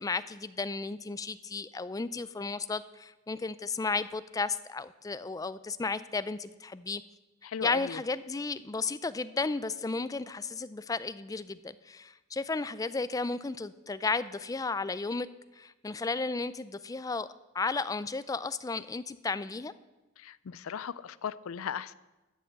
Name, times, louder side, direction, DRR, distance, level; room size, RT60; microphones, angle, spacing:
voice 1, 0.0-7.0 7.6-15.3 15.5-19.7, left 4 dB, 15° left, 15 dB, 0.3 m, -34 dB
voice 2, 7.4-8.0 20.2-21.9, left 7 dB, 85° left, 19 dB, 0.4 m, -37 dB
13.0 x 7.1 x 7.3 m, 1.1 s
head